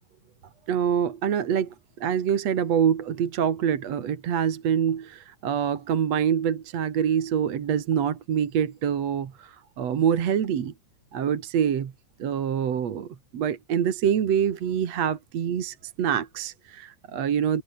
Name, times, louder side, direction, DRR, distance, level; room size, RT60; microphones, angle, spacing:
voice 1, 0.7-10.7 11.1-11.9 12.2-17.6, right 8 dB, 60° right, 2.9 m, -25 dB
open air
omnidirectional pair, 3.5 m